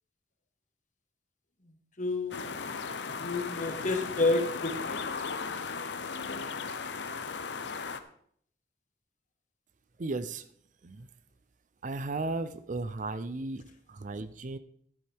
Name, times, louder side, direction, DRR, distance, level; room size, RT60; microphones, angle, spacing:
voice 1, 2.0-2.7 3.2-5.1, left 2 dB, 45° left, 5 dB, 1.5 m, -30 dB
sound 1, 2.3-8.0, left 5 dB, 85° left, 0.8 m, -36 dB
voice 2, 10.0-10.5 10.8-11.1 11.8-14.6, right 3 dB, 45° right, 13 dB, 0.5 m, -35 dB
13.0 x 11.0 x 3.5 m, 0.63 s
head